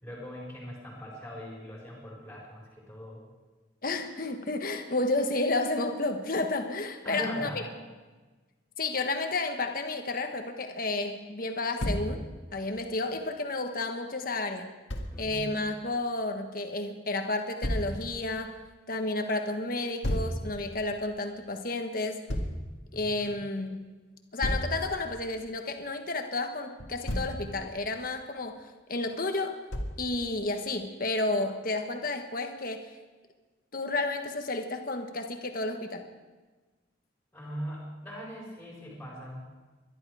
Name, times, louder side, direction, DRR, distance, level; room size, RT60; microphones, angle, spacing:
voice 1, 0.0-3.2 7.0-7.7 15.1-15.6 22.9-23.4 37.3-39.4, equal, 5° left, -5 dB, 4.7 m, -40 dB
voice 2, 3.8-7.5 8.8-12.2 12.5-14.7 15.2-18.5 18.9-22.2 22.9-23.8 24.3-28.6 28.9-29.6 30.0-32.9 33.7-36.0, left 2 dB, 50° left, 5 dB, 1.3 m, -31 dB
Thump thud, 11.8-12.1 14.9-15.1 17.6-17.9 20.0-20.4 22.3-22.6 24.4-24.7 26.8-27.4 29.7-30.0, equal, 90° left, 1.9 m, -30 dB
21.0 x 11.5 x 4.9 m, 1.3 s
head